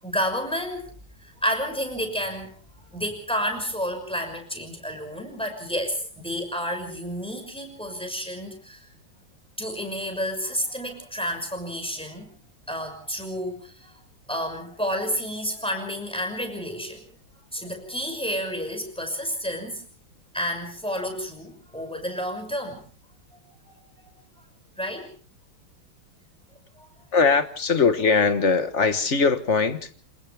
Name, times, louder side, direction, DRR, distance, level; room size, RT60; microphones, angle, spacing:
voice 1, 0.0-0.9 1.2-2.5 2.9-8.8 9.6-12.4 12.7-13.9 14.3-17.0 17.5-19.8 20.3-22.9 23.7-24.1 24.8-25.1 26.8-26.9, equal, ahead, 6.1 m, -30 dB
voice 2, 27.1-29.9, left 4 dB, 40° left, 1.3 m, -21 dB
28.0 x 27.0 x 3.4 m
omnidirectional pair, 2.3 m